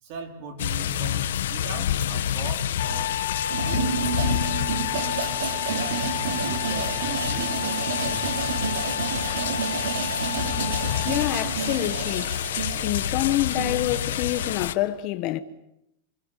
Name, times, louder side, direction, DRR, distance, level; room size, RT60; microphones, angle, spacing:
voice 1, 0.0-3.2 3.6-4.5 6.4-8.3 9.3-9.7, right 4 dB, 35° right, 4.4 m, -39 dB
sound 1, 0.6-14.7, left 10 dB, 90° left, 1.6 m, -29 dB
Trumpet, 2.8-11.3, left 9 dB, 55° left, 2.9 m, -33 dB
sound 2, 3.5-14.6, right 6 dB, 70° right, 4.6 m, -31 dB
voice 2, 10.2-10.6 11.0-12.6 12.8-15.4, left 15 dB, 30° left, 1.0 m, -27 dB
28.0 x 23.0 x 9.0 m
supercardioid pair, 180°, 0 cm